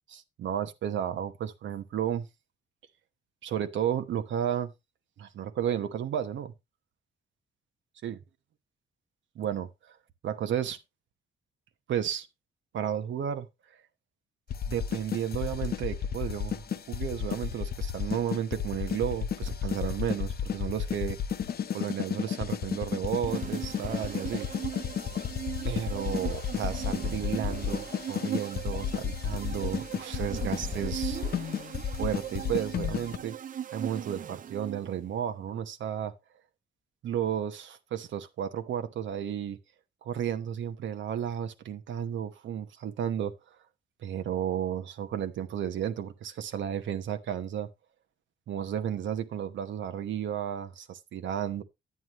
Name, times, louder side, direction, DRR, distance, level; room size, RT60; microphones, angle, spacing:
voice 1, 0.1-2.3 3.4-4.7 5.2-6.5 8.0-8.2 9.3-9.7 10.2-10.8 11.9-12.3 12.7-13.5 14.6-21.2 21.7-24.5 25.6-31.2 31.9-33.4 33.7-36.1 37.0-39.6 40.0-43.3 44.0-47.7 48.5-51.6, right 9 dB, 80° right, 1.0 m, -33 dB
sound 1, 14.5-33.2, left 8 dB, 55° left, 0.9 m, -33 dB
sound 2, 23.2-35.0, right 9 dB, 45° right, 0.6 m, -39 dB
9.6 x 9.5 x 3.0 m
cardioid pair, 130°, 19 cm